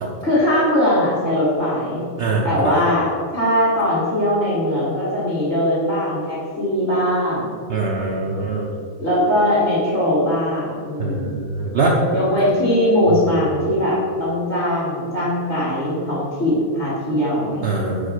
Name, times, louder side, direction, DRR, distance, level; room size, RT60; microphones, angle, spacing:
voice 1, 0.2-2.0 2.4-7.6 9.0-11.4 12.1-17.6, left 1 dB, 50° left, -12 dB, 2.4 m, -20 dB
voice 2, 2.2-2.7 7.7-8.7 11.0-11.9 17.6-18.1, right 3 dB, 60° right, -2 dB, 1.0 m, -22 dB
5.2 x 4.8 x 6.3 m, 2.1 s
omnidirectional pair, 1.2 m